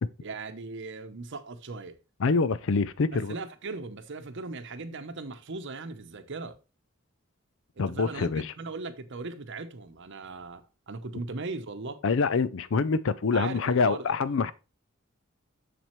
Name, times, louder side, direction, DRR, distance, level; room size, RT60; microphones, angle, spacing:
voice 1, 0.2-2.0 3.1-6.6 7.8-12.0 13.3-14.2, right 3 dB, 60° right, 0.8 m, -38 dB
voice 2, 2.2-3.4 7.8-8.5 12.0-14.5, left 4 dB, 65° left, 0.5 m, -25 dB
7.4 x 6.8 x 3.1 m
head